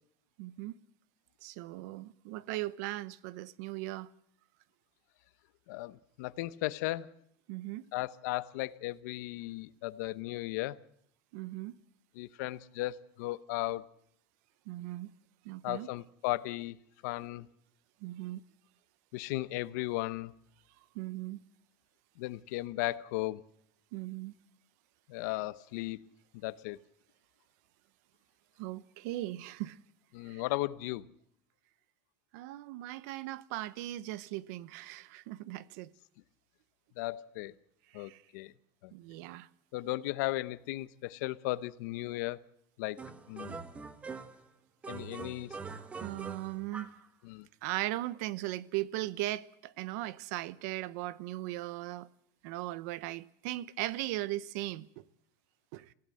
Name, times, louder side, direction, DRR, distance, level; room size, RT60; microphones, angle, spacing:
voice 1, 0.4-0.7 1.4-4.1 7.5-7.9 11.3-11.7 14.7-15.1 15.4-15.9 18.0-18.4 20.9-21.4 23.9-24.3 28.6-29.8 30.3-30.4 32.3-35.9 37.9-38.2 38.9-39.5 45.7-46.9 47.6-52.1 52.4-54.9 55.7-55.9, right 16 dB, 65° right, 0.9 m, -38 dB
voice 2, 5.7-7.1 7.9-10.8 12.1-13.9 15.6-16.8 17.0-17.5 19.1-20.3 22.2-23.4 25.1-26.0 26.3-26.8 30.1-31.1 37.0-37.5 37.9-38.5 38.8-38.9 39.7-42.4 42.8-43.6 44.9-45.6 47.2-47.5, left 18 dB, 75° left, 0.9 m, -36 dB
sound 1, 43.0-44.5 44.8-47.1, right 4 dB, 15° right, 1.2 m, -44 dB
27.0 x 16.5 x 7.8 m
cardioid pair, 160°, 10 cm